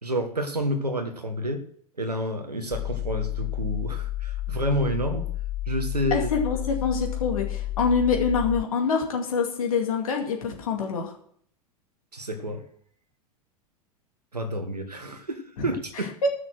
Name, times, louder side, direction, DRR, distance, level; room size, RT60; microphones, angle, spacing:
voice 1, 0.0-1.6 2.0-5.3 5.7-6.3 12.1-12.6 14.3-16.3, equal, 85° right, 7 dB, 1.3 m, -29 dB
sound 1, 2.7-8.6, left 15 dB, 20° left, 0.5 m, -31 dB
voice 2, 6.1-11.1 15.6-15.7 15.9-16.3, left 5 dB, 65° left, 2 dB, 2.3 m, -25 dB
14.5 x 6.3 x 6.2 m, 0.62 s
figure-of-eight pair, 90°, 20 cm